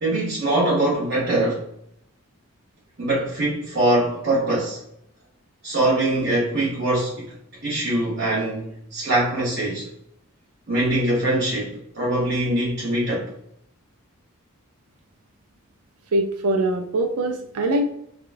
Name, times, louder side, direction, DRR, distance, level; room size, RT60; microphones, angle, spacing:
voice 1, 0.0-1.7 3.0-4.8 5.6-7.3 7.6-9.9 10.7-13.3, right 1 dB, 45° right, 1.1 m, -23 dB
voice 2, 16.1-17.9, right 1 dB, 80° right, 0.5 m, -22 dB
3.5 x 2.3 x 2.5 m
head